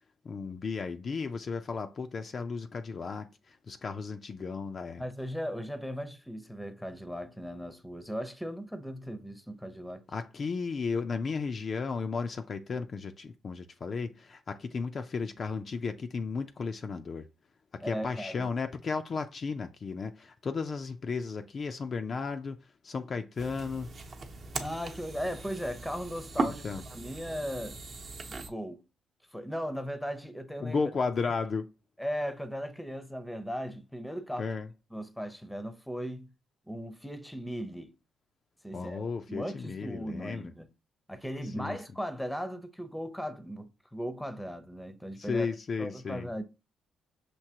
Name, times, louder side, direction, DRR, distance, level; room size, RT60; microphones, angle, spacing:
voice 1, 0.2-5.0 10.1-17.3 17.7-22.6 22.8-23.9 26.5-26.8 30.6-31.7 34.4-34.7 38.7-40.5 41.6-41.8 45.2-46.3, left 5 dB, 45° left, 0.4 m, -34 dB
voice 2, 5.0-10.0 17.8-18.5 24.6-26.6 26.9-27.8 28.3-28.8 29.3-30.8 32.0-34.5 34.9-36.3 36.7-37.9 38.6-39.0 39.3-40.7 41.1-45.5 45.8-46.4, equal, 5° left, 0.7 m, -37 dB
sound 1, 23.4-28.5, right 3 dB, 45° right, 0.8 m, -38 dB
6.0 x 2.8 x 2.8 m
cardioid pair, 90°, 0 cm